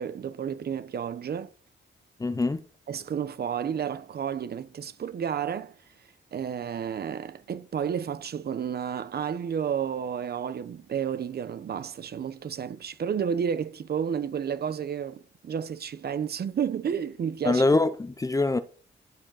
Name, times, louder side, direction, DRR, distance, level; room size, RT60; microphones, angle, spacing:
voice 1, 0.0-1.5 2.9-5.8 6.3-17.6, right 8 dB, 50° right, 0.8 m, -31 dB
voice 2, 2.2-2.6 17.4-18.6, left 2 dB, 15° left, 0.5 m, -23 dB
14.5 x 5.0 x 7.5 m
wide cardioid pair, 160°, 20 cm